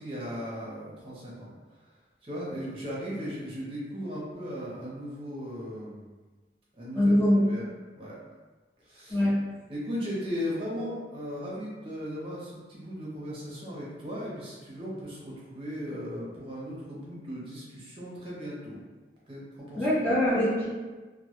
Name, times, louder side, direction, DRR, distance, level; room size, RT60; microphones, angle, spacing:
voice 1, 0.0-1.5 2.2-6.1 6.7-7.1 7.5-7.7 8.0-8.2 8.8-9.2 9.7-18.8 19.3-19.9, equal, 30° right, -6 dB, 0.6 m, -37 dB
voice 2, 7.0-7.5 9.1-9.3 19.8-20.7, left 1 dB, 10° left, -9 dB, 0.5 m, -23 dB
2.1 x 2.1 x 2.8 m, 1.3 s
head